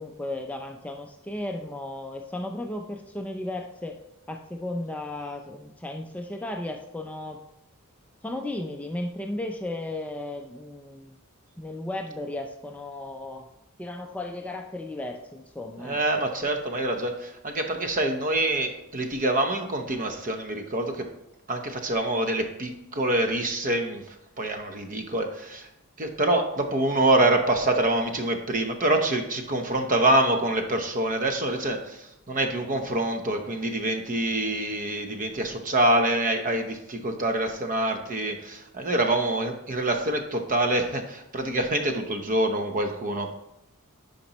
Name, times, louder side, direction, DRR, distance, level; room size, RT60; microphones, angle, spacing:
voice 1, 0.0-4.0 4.3-7.4 8.2-11.1 11.6-13.5 13.8-16.2, left 1 dB, 5° left, 3 dB, 0.4 m, -35 dB
voice 2, 15.8-21.0 21.5-25.7 26.0-43.3, right 1 dB, 40° right, 5 dB, 0.8 m, -26 dB
9.5 x 5.2 x 3.0 m, 0.82 s
head